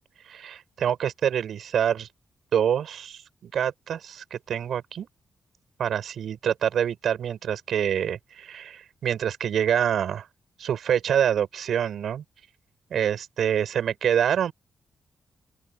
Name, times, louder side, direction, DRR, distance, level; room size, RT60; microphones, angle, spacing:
voice 1, 0.3-2.1 2.5-5.1 5.8-10.3 10.6-12.2 12.9-14.5, right 9 dB, 80° right, 7.5 m, -26 dB
open air
cardioid pair, 105°, 0 cm